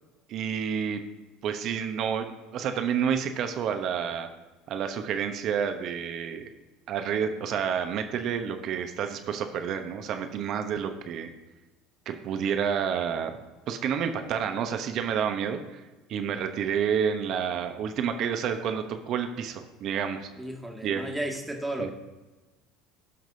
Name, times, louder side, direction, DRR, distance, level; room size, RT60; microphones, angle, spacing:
voice 1, 0.3-1.0 1.4-2.3 2.5-4.3 4.7-6.5 6.9-11.3 12.1-13.4 13.7-15.8 16.1-20.3 20.8-21.0 21.8-21.9, right 7 dB, 55° right, 7 dB, 1.0 m, -29 dB
voice 2, 20.4-21.9, right 1 dB, 10° right, 1 dB, 1.7 m, -33 dB
16.5 x 5.9 x 2.8 m, 1.2 s
hypercardioid pair, 75°, 0 cm